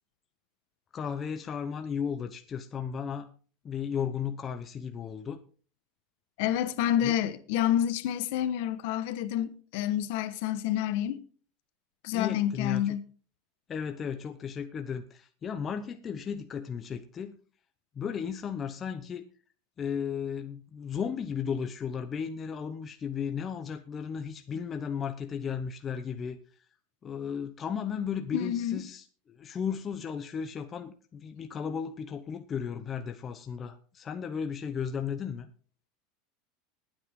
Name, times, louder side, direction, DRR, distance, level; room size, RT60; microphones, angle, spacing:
voice 1, 0.9-3.3 3.6-5.4 7.0-7.1 12.1-13.0 13.7-17.3 17.9-19.2 19.8-26.4 27.0-35.5, left 7 dB, 20° left, 0.8 m, -35 dB
voice 2, 6.4-11.2 12.0-13.0 28.3-28.8, left 11 dB, 60° left, 1.3 m, -28 dB
20.0 x 9.0 x 3.7 m
supercardioid pair, 160°, 0 cm